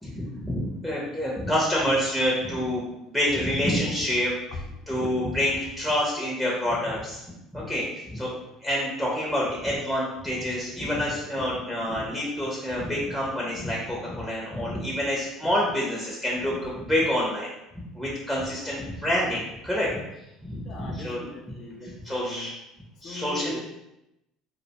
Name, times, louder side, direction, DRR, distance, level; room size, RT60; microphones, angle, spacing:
voice 1, 0.0-2.8 3.1-4.3 4.9-7.2 7.5-8.3 8.6-17.5 18.0-19.9 20.4-21.2 21.8-22.5 23.0-23.6, equal, ahead, -5 dB, 0.5 m, -27 dB
voice 2, 20.6-22.5 23.0-23.6, left 3 dB, 45° left, 1 dB, 0.5 m, -40 dB
2.3 x 2.1 x 2.8 m, 0.89 s
cardioid pair, 120°, 0 cm